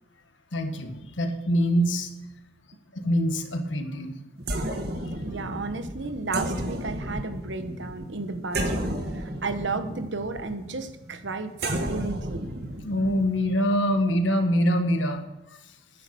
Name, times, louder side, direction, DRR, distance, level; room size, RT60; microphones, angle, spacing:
voice 1, 0.5-2.1 2.9-4.2 5.2-5.4 12.8-15.2, equal, 85° left, 6 dB, 1.6 m, -24 dB
sound 1, 4.4-13.4, right 1 dB, 55° right, 1.7 m, -32 dB
voice 2, 5.2-12.5, right 3 dB, 75° right, 9 dB, 1.2 m, -33 dB
11.0 x 9.8 x 7.0 m, 0.95 s
head